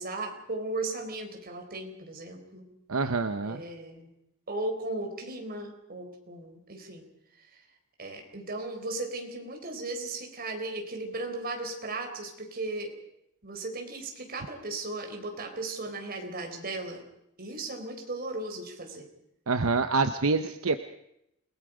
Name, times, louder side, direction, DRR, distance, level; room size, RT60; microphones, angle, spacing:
voice 1, 0.0-2.7 3.4-4.1 4.5-7.1 7.4-7.6 8.0-12.9 13.4-17.0 17.4-19.1, right 2 dB, 45° right, 3 dB, 4.2 m, -36 dB
voice 2, 2.9-3.6 19.5-20.8, right 4 dB, 75° right, 9 dB, 0.9 m, -26 dB
29.0 x 19.5 x 5.1 m, 0.79 s
head